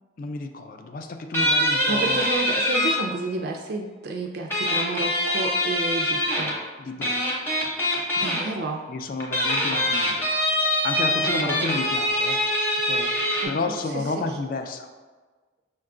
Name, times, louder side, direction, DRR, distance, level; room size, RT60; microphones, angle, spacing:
voice 1, 0.2-2.3 6.8-7.3 8.9-10.3 10.6-12.4 12.9-14.9, left 3 dB, 45° left, 6 dB, 0.3 m, -31 dB
sound 1, 1.3-2.9 4.5-6.6 7.0-8.4 9.2-13.5, equal, 10° left, 0.7 m, -24 dB
voice 2, 1.9-6.6 8.2-8.9 11.2-11.8 13.4-13.5 13.9-14.4, right 2 dB, 55° right, 1 dB, 0.3 m, -31 dB
5.4 x 2.3 x 3.7 m, 1.4 s
head